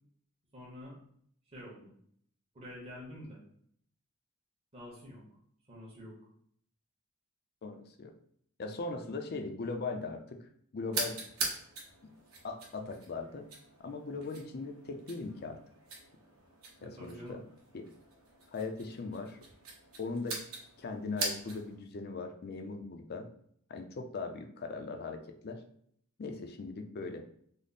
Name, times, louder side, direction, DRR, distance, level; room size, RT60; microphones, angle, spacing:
voice 1, 0.5-0.9 1.5-1.9 2.5-3.4 4.7-5.2 5.7-6.2 16.8-17.4, left 1 dB, 25° right, -5 dB, 0.9 m, -47 dB
voice 2, 7.6-8.1 8.6-11.2 12.0-12.1 12.4-13.5 13.8-15.6 16.8-17.4 17.7-17.8 18.5-19.4 20.0-20.4 20.8-23.3 23.7-25.6 26.2-27.2, left 3 dB, 45° left, 6 dB, 0.4 m, -39 dB
sound 1, 10.9-21.8, right 3 dB, 70° right, 0.9 m, -42 dB
3.3 x 2.0 x 4.0 m, 0.64 s
head